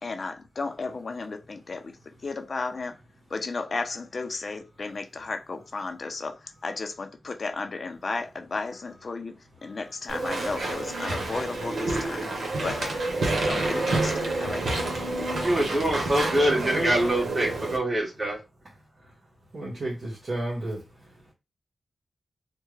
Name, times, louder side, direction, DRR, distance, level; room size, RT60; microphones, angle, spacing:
voice 1, 0.0-3.0 3.3-9.4 9.6-13.0 13.4-14.7 15.1-15.4, left 3 dB, 50° left, 0.5 m, -34 dB
Walk footsteps / Chatter / Squeak, 10.1-17.8, right 2 dB, 80° right, 1.0 m, -28 dB
voice 2, 15.4-18.4, right 1 dB, 30° right, 1.7 m, -24 dB
voice 3, 16.3-16.9 19.5-20.8, right 1 dB, 55° right, 1.4 m, -32 dB
3.3 x 2.2 x 3.2 m
wide cardioid pair, 85°, 0 cm